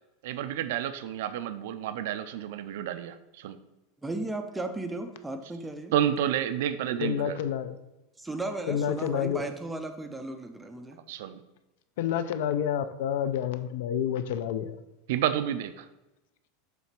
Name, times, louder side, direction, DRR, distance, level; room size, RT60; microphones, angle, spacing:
voice 1, 0.2-3.6 5.9-7.4 11.1-11.4 15.1-15.9, right 10 dB, 65° right, 11 dB, 0.4 m, -30 dB
voice 2, 4.0-5.9 8.2-11.0, right 2 dB, 5° right, 7 dB, 0.4 m, -35 dB
voice 3, 7.0-7.8 8.7-9.4 12.0-14.8, left 9 dB, 65° left, 11 dB, 0.5 m, -29 dB
7.1 x 3.3 x 5.8 m, 0.99 s
supercardioid pair, 180°, 0 cm